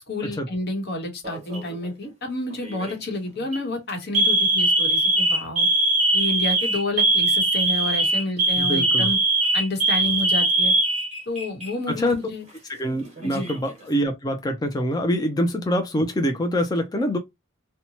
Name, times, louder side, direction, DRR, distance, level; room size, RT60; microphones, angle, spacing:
voice 1, 0.1-5.7 6.1-9.2 9.5-10.7 11.3-12.5 13.2-13.5, left 2 dB, 55° left, 1.0 m, -29 dB
Alarm, 1.2-1.8 2.6-2.9 3.4-3.6 4.1-11.7 12.0-12.1 13.0-13.7, right 2 dB, 35° right, 1.3 m, -21 dB
voice 2, 8.6-9.1 11.9-12.2 12.7-17.2, equal, 20° left, 0.4 m, -25 dB
2.8 x 2.2 x 2.8 m
head